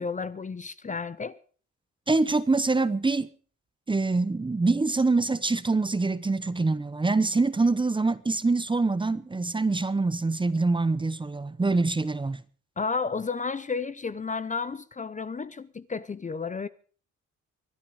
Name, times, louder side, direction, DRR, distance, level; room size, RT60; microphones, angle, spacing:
voice 1, 0.0-1.4 12.8-16.7, left 5 dB, 25° left, 0.7 m, -32 dB
voice 2, 2.1-3.3 3.9-12.4, right 3 dB, 15° right, 0.8 m, -25 dB
25.0 x 9.4 x 4.9 m
cardioid pair, 90°, 30 cm